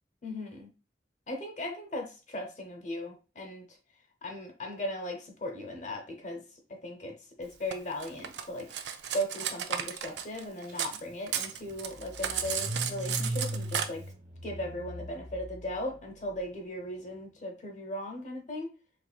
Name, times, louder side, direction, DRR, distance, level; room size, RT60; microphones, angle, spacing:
voice 1, 0.2-0.7 1.3-3.6 4.2-6.4 6.8-14.0 14.4-18.7, left 1 dB, 40° left, 3 dB, 0.7 m, -38 dB
Cutlery silverware, 7.7-11.0 11.3-13.9, right 8 dB, 70° right, 0.4 m, -34 dB
Car / Engine starting, 10.7-10.8 11.1-16.3, right 1 dB, 50° right, 1.2 m, -39 dB
4.3 x 3.2 x 2.3 m, 0.33 s
head